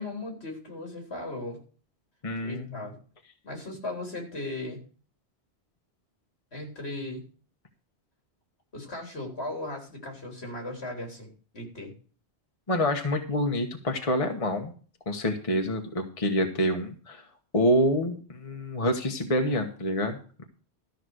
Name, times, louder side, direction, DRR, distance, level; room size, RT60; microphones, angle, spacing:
voice 1, 0.0-1.6 2.4-3.0 3.4-4.8 6.5-7.2 8.7-11.9, left 2 dB, 70° left, 2 dB, 3.9 m, -37 dB
voice 2, 2.2-2.8 12.7-14.7 15.1-17.2 17.5-20.4, equal, 30° left, 4 dB, 1.3 m, -27 dB
13.5 x 5.9 x 6.4 m, 0.39 s
omnidirectional pair, 1.1 m